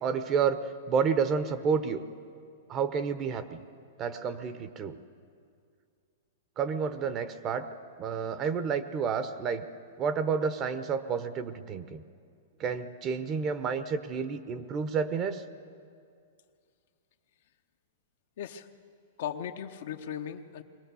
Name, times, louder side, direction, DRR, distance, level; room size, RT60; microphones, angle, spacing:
voice 1, 0.0-2.0 2.7-3.6 4.0-5.0 6.6-7.7 8.0-9.6 10.0-12.0 12.6-15.4, right 6 dB, 25° right, 11 dB, 0.9 m, -30 dB
voice 2, 18.4-18.7 19.2-20.6, left 9 dB, 65° left, 7 dB, 1.0 m, -37 dB
22.0 x 17.5 x 6.9 m, 2.3 s
hypercardioid pair, 145°, 0 cm